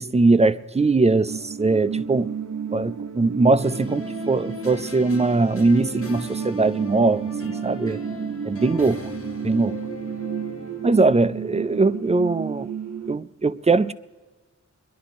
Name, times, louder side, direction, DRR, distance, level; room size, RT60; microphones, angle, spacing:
voice 1, 0.0-2.3 2.7-8.0 8.4-9.0 9.4-9.8 10.8-12.7 13.1-13.9, right 3 dB, 25° right, 0.4 m, -21 dB
sound 1, 1.3-13.2, right 7 dB, 65° right, 0.6 m, -32 dB
sound 2, 3.6-11.0, left 2 dB, 50° left, 1.5 m, -38 dB
22.0 x 11.0 x 4.2 m
wide cardioid pair, 110°, 29 cm